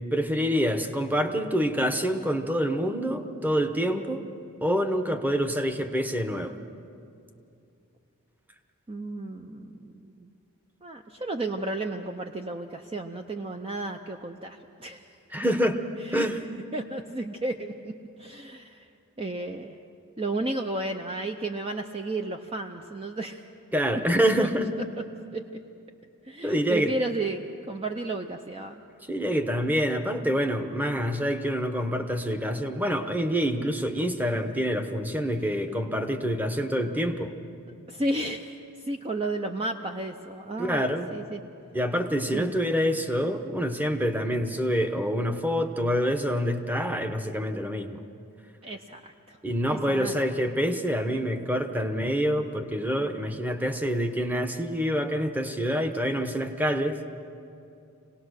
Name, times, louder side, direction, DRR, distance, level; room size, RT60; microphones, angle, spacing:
voice 1, 0.1-4.2 4.6-6.6 15.3-15.8 16.1-16.4 23.7-24.7 26.4-26.9 29.1-37.4 40.6-41.1 41.7-48.0 49.4-57.0, equal, 10° right, 7 dB, 1.0 m, -26 dB
voice 2, 8.9-10.3 10.8-15.1 15.4-15.5 16.0-16.3 16.7-18.9 19.2-19.8 20.2-23.4 24.4-24.5 25.3-25.4 26.2-28.8 37.9-41.4 42.3-42.5 48.6-49.4 49.7-50.2, right 2 dB, 25° right, 5 dB, 0.6 m, -33 dB
26.0 x 18.0 x 6.5 m, 2.6 s
head